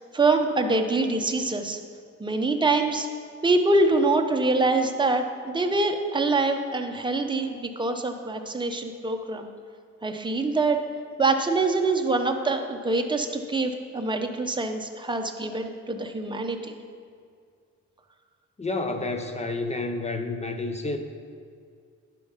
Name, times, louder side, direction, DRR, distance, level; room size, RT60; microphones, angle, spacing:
voice 1, 0.0-1.8 2.2-3.1 3.4-9.5 10.0-10.8 11.2-16.8, right 3 dB, 15° right, 4 dB, 0.9 m, -25 dB
voice 2, 18.6-21.0, left 2 dB, 20° left, 6 dB, 0.7 m, -29 dB
11.5 x 4.6 x 5.7 m, 2.2 s
cardioid pair, 90°, 30 cm